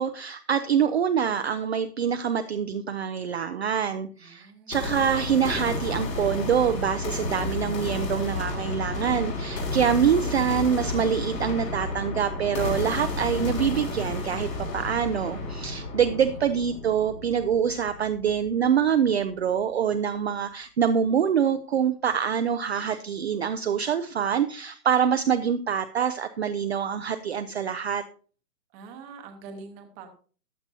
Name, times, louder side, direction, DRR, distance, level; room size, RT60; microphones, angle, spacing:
voice 1, 0.0-28.0, right 8 dB, 40° right, 9 dB, 0.5 m, -25 dB
voice 2, 4.2-5.1 16.2-16.4 28.7-30.1, right 4 dB, 15° right, 5 dB, 0.9 m, -45 dB
sound 1, 4.7-18.7, left 2 dB, 80° left, 5.2 m, -32 dB
14.5 x 9.5 x 2.7 m, 0.41 s
hypercardioid pair, 160°, 49 cm